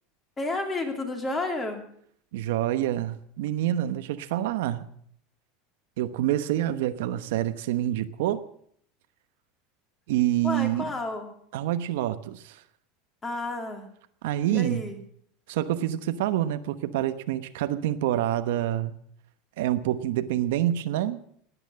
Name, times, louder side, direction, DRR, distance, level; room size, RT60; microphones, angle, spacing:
voice 1, 0.4-1.8 10.4-11.3 13.2-13.9 14.5-15.0, left 2 dB, 15° left, 2.6 m, -31 dB
voice 2, 2.3-4.9 6.0-8.4 10.1-10.9 11.5-12.6 14.2-14.8 15.5-19.0 19.6-21.2, right 13 dB, 75° right, 1.0 m, -27 dB
19.0 x 9.2 x 7.6 m
supercardioid pair, 165°, 0 cm